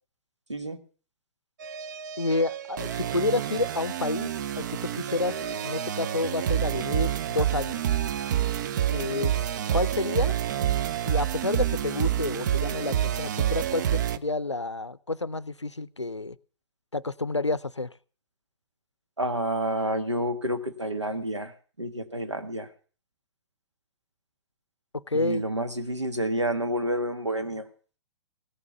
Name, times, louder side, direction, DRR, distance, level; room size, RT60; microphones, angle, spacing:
sound 1, 1.6-14.2, right 10 dB, 40° right, 0.6 m, -28 dB
voice 1, 2.2-5.4 5.6-7.8 8.9-9.3 9.7-10.3 11.0-16.4 16.9-17.9 24.9-25.4, left 3 dB, 90° left, 0.5 m, -29 dB
voice 2, 19.2-21.5 21.8-22.7 25.1-27.7, right 1 dB, 85° right, 1.6 m, -29 dB
17.0 x 7.1 x 6.8 m
figure-of-eight pair, 115°, 15 cm